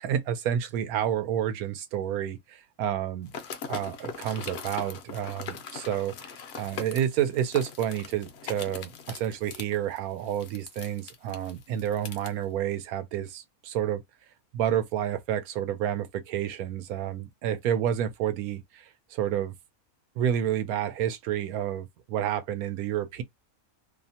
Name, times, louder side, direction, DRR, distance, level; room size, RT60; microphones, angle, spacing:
voice 1, 0.0-3.3 3.7-6.3 6.6-14.0 14.5-19.5 20.2-23.2, right 10 dB, 80° right, 1.0 m, -29 dB
sound 1, 3.3-12.3, left 6 dB, 65° left, 0.7 m, -41 dB
2.7 x 2.1 x 2.7 m
omnidirectional pair, 1.6 m